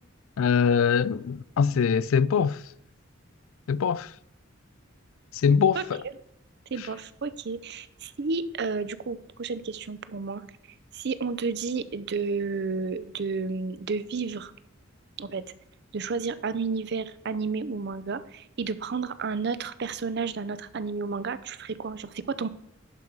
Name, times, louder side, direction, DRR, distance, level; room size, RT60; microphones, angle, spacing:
voice 1, 0.4-2.6 3.7-4.1 5.4-6.0, left 6 dB, 75° left, 0.4 m, -22 dB
voice 2, 6.7-10.4 10.9-14.5 15.2-15.4 15.9-22.5, right 4 dB, 55° right, 0.5 m, -31 dB
11.5 x 5.4 x 4.6 m
head